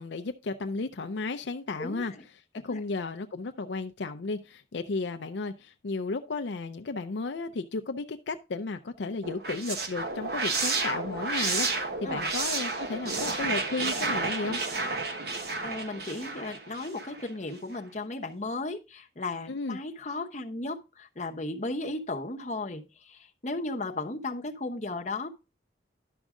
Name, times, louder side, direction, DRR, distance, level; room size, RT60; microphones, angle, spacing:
voice 1, 0.0-2.1 2.6-14.6 19.5-19.8, left 3 dB, 70° left, 0.5 m, -34 dB
voice 2, 1.8-2.2 2.7-2.8 12.0-12.3 15.2-25.3, left 2 dB, 35° left, 0.9 m, -35 dB
sound 1, 9.2-17.3, right 3 dB, 55° right, 1.2 m, -31 dB
11.0 x 6.2 x 3.7 m
head